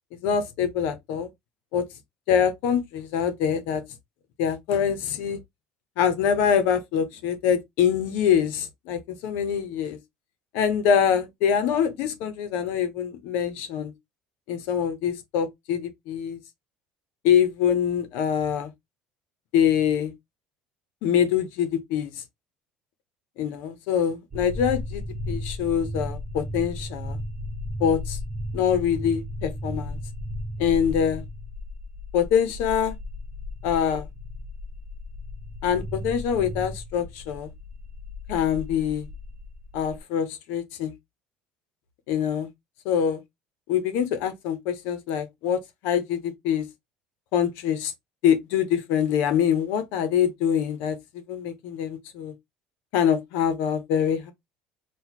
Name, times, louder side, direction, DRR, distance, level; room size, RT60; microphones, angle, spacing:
voice 1, 0.2-1.3 1.7-1.8 2.3-3.8 4.4-5.4 6.0-10.0 10.5-13.9 14.5-16.4 17.2-18.7 19.5-20.1 21.0-22.1 23.4-27.2 27.8-28.2 28.5-30.0 30.6-31.2 32.1-32.9 33.6-34.1 35.6-37.5 38.3-39.1 39.7-40.9 42.1-42.5 42.8-43.2 43.7-46.6 47.3-47.9 48.2-51.0 51.3-52.3 52.9-54.3, left 8 dB, 75° left, 1.0 m, -24 dB
sound 1, 24.3-40.0, left 1 dB, 20° right, 0.7 m, -35 dB
4.0 x 2.5 x 3.0 m
supercardioid pair, 110°, 3 cm